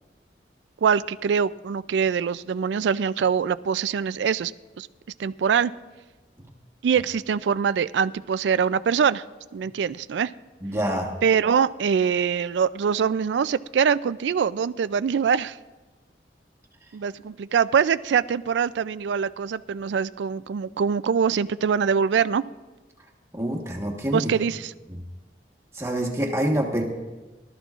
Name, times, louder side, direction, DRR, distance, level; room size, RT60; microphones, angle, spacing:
voice 1, 0.8-4.5 4.8-4.9 5.2-5.7 6.8-9.2 9.5-10.3 11.2-15.6 16.9-22.4 24.1-24.7, right 7 dB, 85° right, 15 dB, 0.4 m, -23 dB
voice 2, 10.6-11.1 23.3-24.3 25.7-26.8, equal, 15° right, 0 dB, 1.3 m, -26 dB
22.5 x 12.5 x 2.5 m, 1.2 s
head